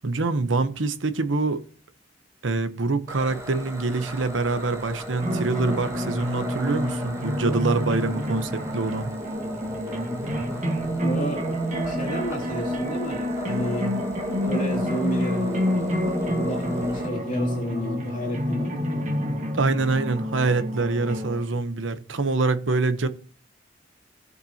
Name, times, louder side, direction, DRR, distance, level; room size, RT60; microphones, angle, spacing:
voice 1, 0.0-1.6 2.4-9.2 19.5-23.1, right 3 dB, 85° right, 1.0 m, -25 dB
sound 1, 3.1-17.1, equal, 15° right, 3.0 m, -35 dB
sound 2, 5.2-21.4, equal, 40° right, 1.6 m, -28 dB
voice 2, 11.0-11.5 11.8-14.0 14.4-16.1 16.4-19.1, equal, 45° left, 2.8 m, -31 dB
17.5 x 6.7 x 2.9 m
head